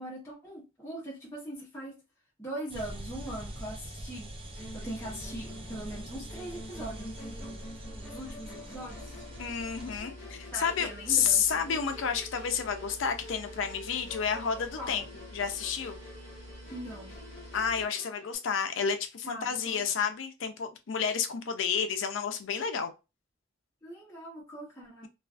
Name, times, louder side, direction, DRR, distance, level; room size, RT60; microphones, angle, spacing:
voice 1, 0.0-2.0 2.4-9.2 10.5-11.8 14.8-15.1 16.7-17.2 19.2-20.1 23.8-25.1, right 1 dB, 15° left, 0.8 m, -42 dB
sound 1, 2.7-10.0, right 1 dB, 30° right, 0.4 m, -43 dB
Musical instrument, 4.6-18.4, left 1 dB, 35° left, 1.2 m, -48 dB
sound 2, 8.9-17.9, equal, 55° right, 1.1 m, -48 dB
voice 2, 9.4-15.0 15.3-16.0 17.5-22.9, left 7 dB, 70° left, 0.4 m, -30 dB
2.3 x 2.3 x 2.3 m
head